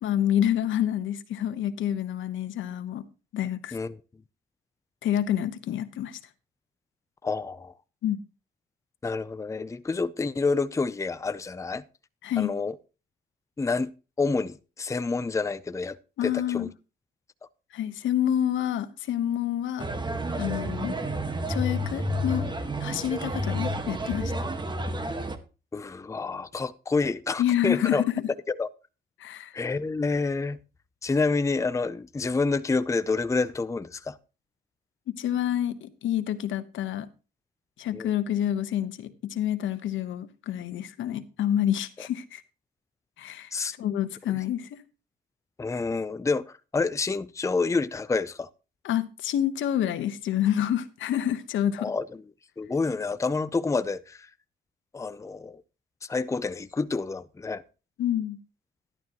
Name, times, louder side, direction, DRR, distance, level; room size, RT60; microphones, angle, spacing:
voice 1, 0.0-3.0 3.3-3.8 5.0-6.2 8.0-8.2 12.2-12.5 16.2-16.7 17.7-19.9 20.4-21.0 21.5-22.5 22.8-24.3 27.4-28.3 29.2-29.5 35.1-37.1 37.8-42.4 43.2-43.5 43.8-44.8 48.8-51.9 58.0-58.4, left 11 dB, 75° left, 1.2 m, -28 dB
voice 2, 7.2-7.7 9.0-11.8 12.4-12.8 13.6-13.9 14.2-16.7 25.7-28.0 28.5-28.7 29.5-30.6 31.0-34.2 37.9-38.1 42.0-42.1 43.5-43.7 44.3-44.4 45.6-48.5 51.8-52.1 52.6-54.3 54.9-55.6 56.0-57.6, left 4 dB, 15° left, 0.6 m, -28 dB
sound 1, 19.8-25.4, equal, 20° right, 1.6 m, -30 dB
12.0 x 11.5 x 3.0 m
cardioid pair, 90°, 20 cm